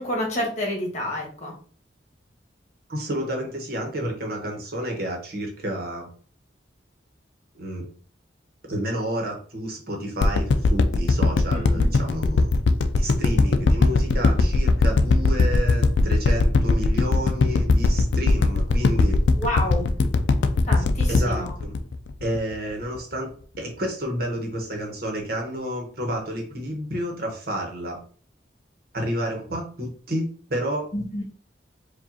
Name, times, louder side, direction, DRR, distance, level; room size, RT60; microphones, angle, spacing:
voice 1, 0.0-1.5 11.7-11.9 19.4-19.9 20.6-21.5 30.9-31.2, left 1 dB, 40° left, -1 dB, 1.5 m, -28 dB
voice 2, 2.9-6.1 7.6-7.8 8.7-12.5 12.9-19.2 21.1-21.7 22.2-23.3 23.6-28.0 28.9-30.9, equal, 55° right, 2 dB, 1.1 m, -30 dB
sound 1, 10.2-22.5 22.9-23.0, left 3 dB, 80° left, 0.4 m, -19 dB
4.7 x 2.5 x 2.8 m, 0.43 s
head